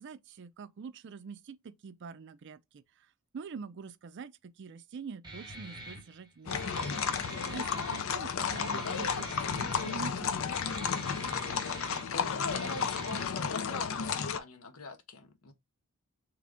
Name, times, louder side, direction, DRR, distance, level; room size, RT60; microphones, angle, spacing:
voice 1, 0.0-6.8 7.5-10.5, right 5 dB, 55° right, 0.4 m, -45 dB
Guitar, 5.2-13.2, right 2 dB, 20° right, 0.9 m, -45 dB
sound 1, 6.5-14.4, left 6 dB, 65° left, 0.5 m, -33 dB
voice 2, 12.1-15.5, left 3 dB, 90° left, 0.9 m, -43 dB
3.7 x 3.0 x 3.5 m
head